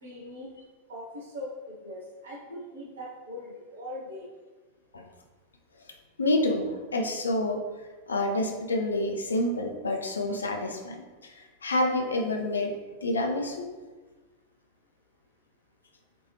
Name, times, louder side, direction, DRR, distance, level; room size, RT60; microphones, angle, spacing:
voice 1, 0.0-0.5 0.9-4.3, left 1 dB, 65° right, -5 dB, 0.9 m, -41 dB
voice 2, 6.2-6.6 6.9-7.6 8.1-11.0 11.6-12.7 13.0-13.6, left 1 dB, 75° left, 2 dB, 0.5 m, -27 dB
3.4 x 3.1 x 3.1 m, 1.3 s
figure-of-eight pair, 90°, 0 cm